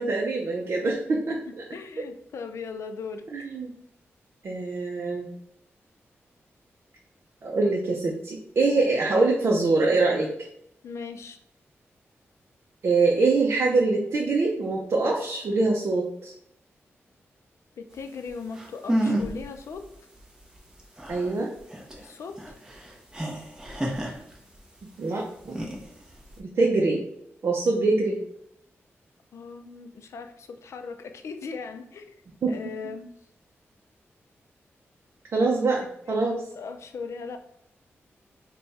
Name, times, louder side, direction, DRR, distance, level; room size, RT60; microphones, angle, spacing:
voice 1, 0.0-1.3 2.0-2.1 3.3-3.7 4.4-5.3 7.4-10.3 12.8-16.3 21.1-21.5 25.0-25.6 26.4-27.0 27.4-28.2 32.4-32.6 35.3-36.4, right 3 dB, 60° right, -1 dB, 0.5 m, -24 dB
voice 2, 1.7-3.2 10.8-11.4 17.8-19.9 22.0-22.5 29.3-32.2 32.5-33.1 36.1-37.4, left 5 dB, 75° left, 7 dB, 0.4 m, -38 dB
sound 1, 18.3-18.4 18.5-19.5 19.8-19.9 20.2-24.8 25.4-26.4, right 1 dB, 15° right, 0.7 m, -30 dB
3.3 x 2.2 x 4.0 m, 0.76 s
wide cardioid pair, 105°, 5 cm